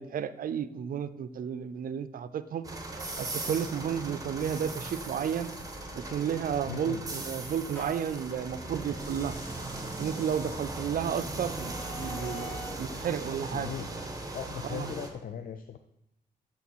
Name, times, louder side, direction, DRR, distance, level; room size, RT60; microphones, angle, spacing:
voice 1, 0.0-2.6 3.2-5.5 5.9-9.3 10.0-13.7 14.7-14.9, right 8 dB, 65° right, 14 dB, 0.4 m, -32 dB
sound 1, 2.6-15.1, right 2 dB, 25° right, 1.2 m, -38 dB
sound 2, 6.4-8.2 8.9-12.9, left 1 dB, 15° left, 2.1 m, -47 dB
voice 2, 6.7-7.1 13.5-13.9 14.3-15.8, left 8 dB, 60° left, 8 dB, 0.4 m, -38 dB
8.3 x 3.7 x 4.4 m, 0.82 s
cardioid pair, 60°, 16 cm